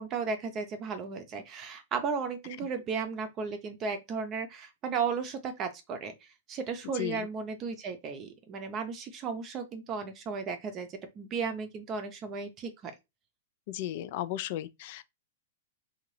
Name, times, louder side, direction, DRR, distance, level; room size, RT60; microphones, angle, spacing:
voice 1, 0.0-6.1 6.5-12.9, right 5 dB, 30° right, 0.6 m, -35 dB
voice 2, 6.9-7.3 13.7-15.1, left 13 dB, 55° left, 0.3 m, -35 dB
2.6 x 2.4 x 3.1 m
hypercardioid pair, 135°, 0 cm